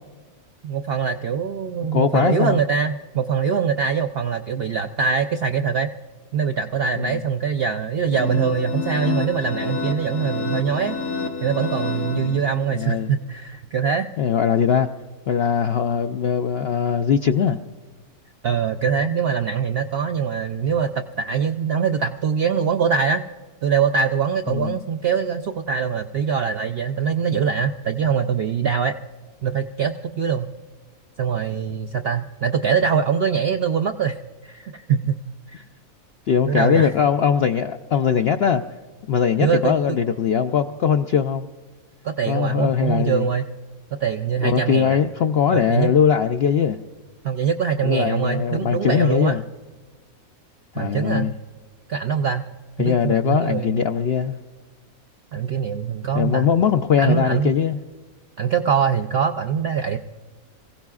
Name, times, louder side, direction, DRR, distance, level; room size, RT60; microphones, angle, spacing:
voice 1, 0.6-5.9 6.3-11.0 11.4-14.1 18.4-23.2 23.6-28.9 29.4-30.5 31.2-34.2 34.4-35.2 36.5-36.9 39.4-39.7 42.0-43.5 43.9-45.0 45.5-45.9 47.2-49.4 50.8-51.3 51.9-52.4 52.8-53.8 55.3-56.5 57.0-57.6 58.4-60.0, right 6 dB, 70° right, 6 dB, 0.5 m, -23 dB
voice 2, 1.9-2.6 7.0-7.2 12.1-12.4 12.7-13.1 14.2-14.9 15.3-17.6 24.5-24.8 36.3-38.6 39.1-41.5 42.3-43.2 44.4-46.8 47.8-49.4 50.7-51.3 52.8-54.4 56.1-57.8, left 7 dB, 70° left, 6 dB, 0.6 m, -20 dB
sound 1, 8.1-12.9, left 5 dB, 90° left, 1.7 m, -29 dB
26.0 x 16.0 x 2.4 m, 1.4 s
omnidirectional pair, 1.6 m